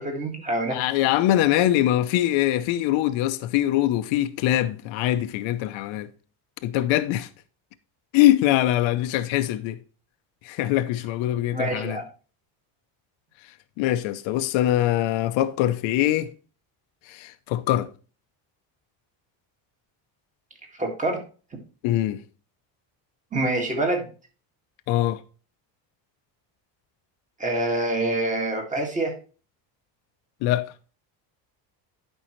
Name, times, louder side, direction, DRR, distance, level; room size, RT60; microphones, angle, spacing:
voice 1, 0.0-0.8 11.5-12.0 20.8-21.2 23.3-24.1 27.4-29.1, right 2 dB, 15° right, 2.0 m, -26 dB
voice 2, 0.7-6.1 6.6-7.3 8.1-9.8 10.4-12.0 13.8-16.3 17.1-17.9 21.8-22.2 24.9-25.2 30.4-30.7, left 13 dB, 80° left, 0.8 m, -23 dB
11.5 x 5.5 x 3.1 m
cardioid pair, 150°, 46 cm